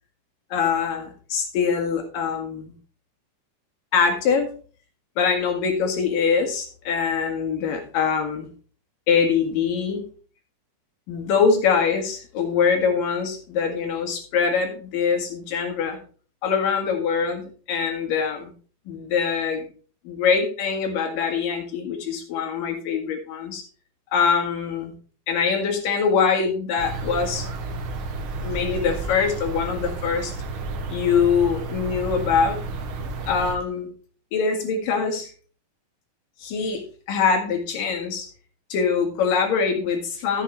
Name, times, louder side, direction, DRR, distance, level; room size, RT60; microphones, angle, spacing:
voice 1, 0.5-2.7 3.9-4.5 5.2-8.5 9.1-10.0 11.1-16.0 16.4-17.4 17.7-18.5 18.9-19.6 20.0-23.6 24.1-24.9 25.3-27.5 28.4-30.3 30.9-32.6 33.3-33.9 34.3-35.3 36.4-36.8 37.1-38.3 38.7-40.4, left 6 dB, 70° left, 4 dB, 3.4 m, -23 dB
sound 1, 26.8-33.6, right 3 dB, 90° right, 1.1 m, -31 dB
13.5 x 7.3 x 3.2 m, 0.40 s
omnidirectional pair, 4.1 m